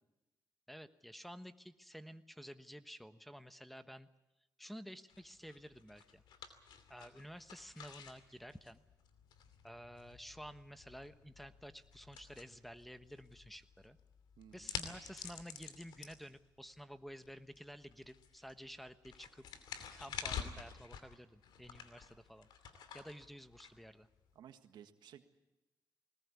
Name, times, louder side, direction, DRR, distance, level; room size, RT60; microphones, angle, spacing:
voice 1, 0.7-4.1 4.6-6.2 6.9-8.8 9.6-14.0 14.5-19.4 20.0-22.5 22.9-24.1, equal, ahead, 11 dB, 1.2 m, -52 dB
sound 1, 5.1-24.3, left 7 dB, 90° left, 2.6 m, -50 dB
voice 2, 14.4-14.7 24.3-25.2, right 9 dB, 85° right, 8 dB, 1.6 m, -56 dB
21.0 x 19.5 x 8.4 m, 1.0 s
cardioid pair, 80°, 7 cm